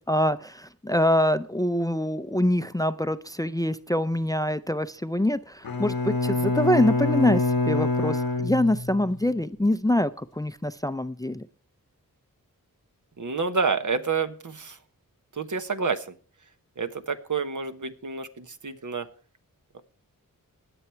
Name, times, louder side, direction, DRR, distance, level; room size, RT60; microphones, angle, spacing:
voice 1, 0.1-11.5, left 1 dB, 10° left, 12 dB, 0.6 m, -25 dB
Bowed string instrument, 5.6-9.2, left 2 dB, 90° left, 1.3 m, -26 dB
voice 2, 13.2-14.8 15.3-16.1 16.8-19.1 19.7-19.8, right 5 dB, 60° right, 8 dB, 1.2 m, -29 dB
19.5 x 7.1 x 4.5 m, 0.42 s
cardioid pair, 50°, 35 cm